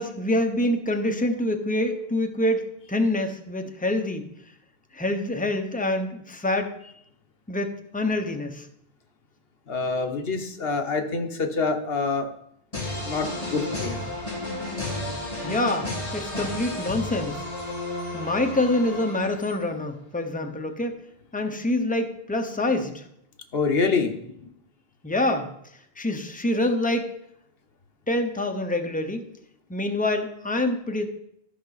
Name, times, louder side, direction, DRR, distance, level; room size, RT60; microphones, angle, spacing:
voice 1, 0.0-4.3 4.9-6.7 7.5-8.7 15.4-17.5 18.1-21.0 21.3-23.0 25.0-25.5 26.0-27.1 28.1-29.3 29.7-31.1, left 1 dB, 10° left, 5 dB, 0.7 m, -26 dB
voice 2, 9.7-12.3 12.9-14.0 23.5-24.1, left 4 dB, 70° left, 5 dB, 1.2 m, -26 dB
sound 1, 12.7-19.7, left 2 dB, 35° left, 2.2 m, -32 dB
13.0 x 5.4 x 4.1 m, 0.74 s
omnidirectional pair, 1.0 m